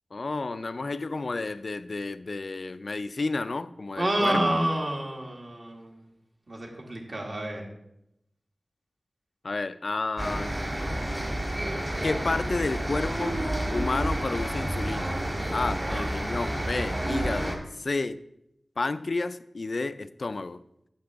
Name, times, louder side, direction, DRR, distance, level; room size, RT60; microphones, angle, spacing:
voice 1, 0.1-4.4 9.4-10.6 12.0-13.4 13.7-15.2 15.5-18.2 18.8-20.6, left 3 dB, 60° left, 13 dB, 0.4 m, -31 dB
voice 2, 4.0-5.9 6.5-7.7 15.9-16.1 16.8-16.9, right 1 dB, 50° right, 0 dB, 1.9 m, -29 dB
sound 1, 10.2-17.6, right 1 dB, 30° right, 1.6 m, -30 dB
8.7 x 7.6 x 3.5 m, 0.81 s
wide cardioid pair, 80°, 0 cm